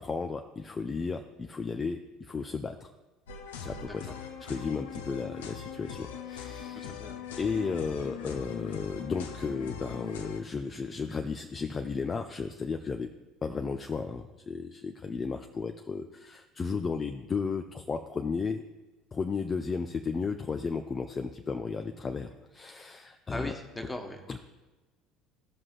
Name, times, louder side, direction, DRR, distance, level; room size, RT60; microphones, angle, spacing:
voice 1, 0.0-2.9 3.6-6.9 7.4-13.1 13.4-18.6 19.1-23.5 24.3-24.4, left 5 dB, 25° left, 6 dB, 0.4 m, -34 dB
sound 1, 3.3-10.4, left 7 dB, 70° left, 0.6 m, -41 dB
voice 2, 6.7-7.2 23.3-24.2, left 1 dB, 10° left, 3 dB, 1.2 m, -39 dB
15.0 x 6.0 x 2.5 m, 1.1 s
figure-of-eight pair, 65°, 0 cm